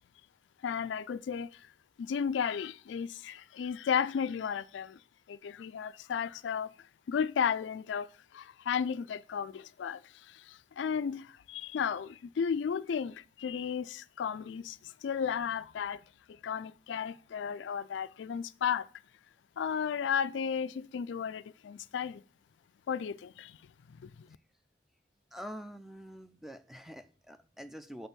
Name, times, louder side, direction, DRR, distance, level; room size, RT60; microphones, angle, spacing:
voice 1, 0.6-1.7 2.0-5.0 5.3-6.7 7.1-16.0 16.3-18.9 19.6-22.2 22.9-23.6 23.9-24.3, left 7 dB, 70° left, 0.3 m, -34 dB
voice 2, 25.3-28.1, equal, ahead, 0.4 m, -46 dB
6.9 x 4.5 x 6.6 m
head